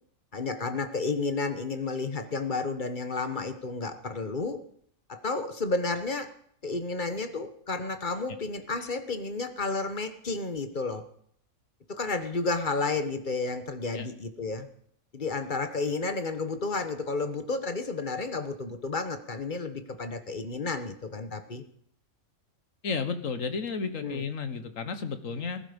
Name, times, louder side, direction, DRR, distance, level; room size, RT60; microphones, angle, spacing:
voice 1, 0.3-4.6 5.1-6.3 6.6-11.0 11.9-14.7 15.1-21.6 24.0-24.3, left 3 dB, 35° left, 9 dB, 1.4 m, -31 dB
voice 2, 22.8-25.6, left 5 dB, 65° left, 10 dB, 1.7 m, -32 dB
20.0 x 12.0 x 5.3 m, 0.64 s
omnidirectional pair, 1.5 m